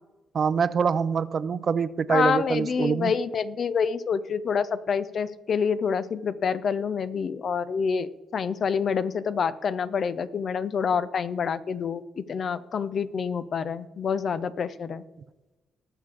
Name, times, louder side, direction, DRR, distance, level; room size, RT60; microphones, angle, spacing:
voice 1, 0.3-3.1, right 6 dB, 50° right, 16 dB, 0.5 m, -25 dB
voice 2, 2.1-15.0, left 6 dB, 50° left, 14 dB, 0.6 m, -27 dB
20.0 x 6.7 x 3.5 m, 1.1 s
cardioid pair, 90°, 0 cm